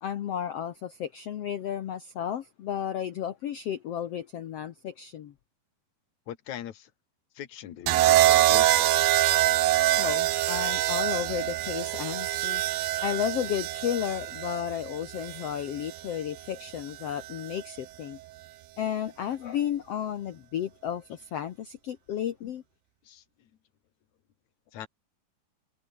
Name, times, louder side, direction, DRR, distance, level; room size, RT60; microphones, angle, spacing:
voice 1, 0.0-5.3 10.0-12.6 13.0-18.2 18.8-22.6, left 9 dB, 90° left, 1.3 m, -33 dB
voice 2, 6.3-6.9 7.3-9.2 23.0-23.5 24.7-24.9, left 11 dB, 55° left, 2.8 m, -41 dB
sound 1, 7.9-16.0 17.2-17.6, right 14 dB, 70° right, 2.7 m, -25 dB
omnidirectional pair, 4.4 m